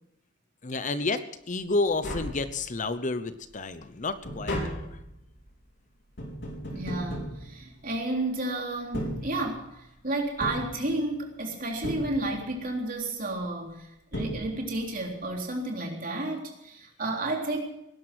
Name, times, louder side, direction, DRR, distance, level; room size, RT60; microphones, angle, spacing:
voice 1, 0.6-5.0, left 3 dB, 40° left, 12 dB, 0.8 m, -30 dB
Tap, 1.6-1.7 1.9-3.0 3.4-8.2 8.8-9.8 10.4-11.4 11.8-12.7 13.7-13.8 14.1-15.0 15.2-15.3, equal, 60° left, 4.0 m, -37 dB
voice 2, 6.7-17.6, right 2 dB, 45° right, 1 dB, 3.6 m, -32 dB
19.0 x 11.0 x 6.2 m, 0.84 s
head